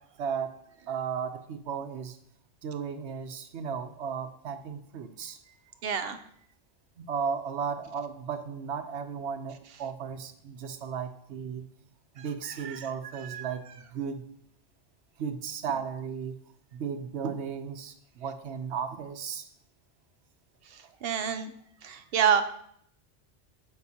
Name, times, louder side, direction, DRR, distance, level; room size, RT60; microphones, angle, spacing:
voice 1, 0.2-0.6 0.9-2.2 2.6-5.4 7.0-11.7 12.1-13.6 13.9-14.3 15.2-16.4 16.7-19.5, right 6 dB, 85° right, 9 dB, 1.0 m, -35 dB
voice 2, 5.8-6.2 12.2-12.9 13.2-13.5 21.0-21.5 21.8-22.4, right 8 dB, 65° right, 8 dB, 0.8 m, -28 dB
9.5 x 7.0 x 2.8 m, 0.68 s
omnidirectional pair, 1.1 m